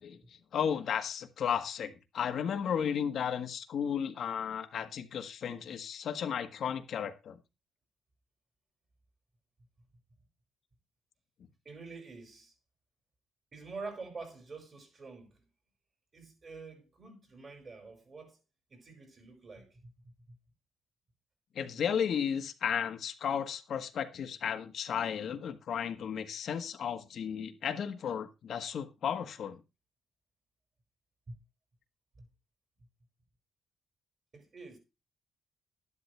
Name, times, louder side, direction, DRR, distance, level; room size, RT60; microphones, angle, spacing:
voice 1, 0.0-7.4 21.5-29.6, left 8 dB, 65° left, 1.5 m, -34 dB
voice 2, 11.7-12.5 13.5-15.4 16.1-18.4 18.7-20.4 31.3-31.4 32.2-32.3 34.3-34.8, right 4 dB, 40° right, 5.6 m, -47 dB
12.0 x 11.0 x 3.4 m
cardioid pair, 90°, 0 cm